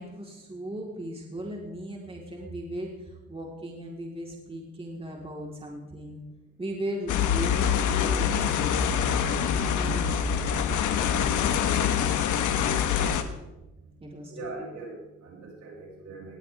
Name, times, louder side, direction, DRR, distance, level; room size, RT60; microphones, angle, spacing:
voice 1, 0.0-6.2 6.6-8.7 9.3-10.5 10.8-13.0 14.0-14.6, equal, 20° right, -2 dB, 4.0 m, -38 dB
sound 1, 7.1-13.2, left 8 dB, 75° left, 1.5 m, -25 dB
voice 2, 14.3-16.4, right 2 dB, 70° right, -2 dB, 7.5 m, -41 dB
19.5 x 16.5 x 3.6 m, 1.0 s
cardioid pair, 90°, 30 cm